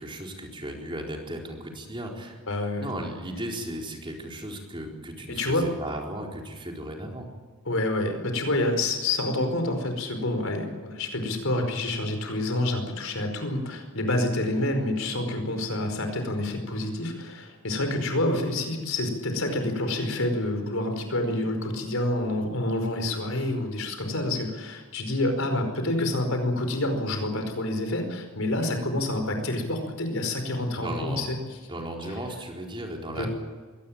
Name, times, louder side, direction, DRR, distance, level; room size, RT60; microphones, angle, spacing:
voice 1, 0.0-2.4 2.8-7.3 30.7-31.3 31.7-33.3, right 1 dB, 25° right, 0 dB, 4.3 m, -36 dB
voice 2, 2.5-2.9 5.3-5.7 7.6-31.4 33.2-33.3, left 1 dB, 70° left, 5 dB, 5.0 m, -28 dB
23.0 x 18.0 x 8.9 m, 1.4 s
head